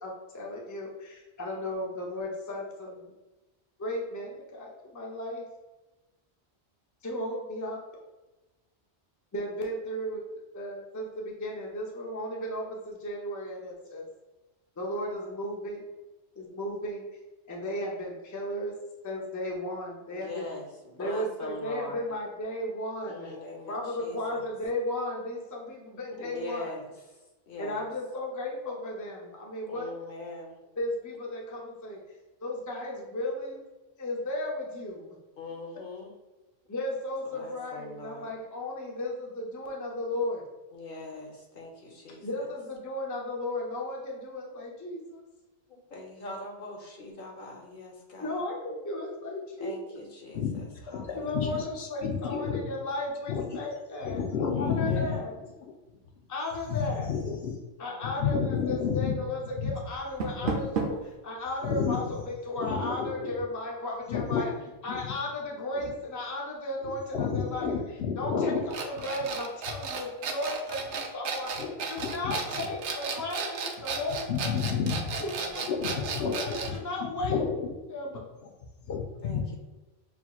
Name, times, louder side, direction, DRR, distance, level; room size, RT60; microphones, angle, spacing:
voice 1, 0.0-3.1 3.8-5.4 7.0-7.8 9.3-10.2 10.5-14.0 14.8-15.8 16.4-17.0 17.5-18.7 19.0-20.5 21.0-23.3 23.7-26.7 27.6-29.9 30.8-32.0 32.4-33.6 34.0-35.1 36.7-40.4 42.2-45.2 48.2-49.7 51.1-54.2 54.6-55.3 56.3-57.1 57.8-64.5 64.8-71.5 71.9-74.8 75.2-75.6 75.9-77.4 77.9-78.2, left 1 dB, 20° left, -1 dB, 0.6 m, -35 dB
voice 2, 20.1-22.1 23.0-24.4 26.2-26.9 27.5-27.9 29.7-30.6 35.4-36.1 37.3-38.3 40.7-42.3 45.7-48.4 49.6-51.7 54.5-55.3 57.8-58.5 75.3-75.6 79.2-79.6, left 2 dB, 55° left, 0 dB, 1.0 m, -42 dB
voice 3, 50.9-52.6 53.3-53.4 54.0-55.2 56.7-57.5 58.0-59.2 59.6-59.7 61.6-62.0 62.6-63.3 64.1-64.4 67.1-68.7 71.6-71.7 72.0-72.3 74.3-75.0 75.7-76.4 76.7-76.8 77.0-77.7 78.9-79.4, left 6 dB, 75° left, 2 dB, 0.9 m, -30 dB
Door, 59.9-61.1, right 4 dB, 60° right, 0.8 m, -32 dB
sound 1, 68.7-76.8, right 5 dB, 90° right, 0.9 m, -34 dB
5.9 x 2.9 x 2.3 m, 1.1 s
omnidirectional pair, 1.1 m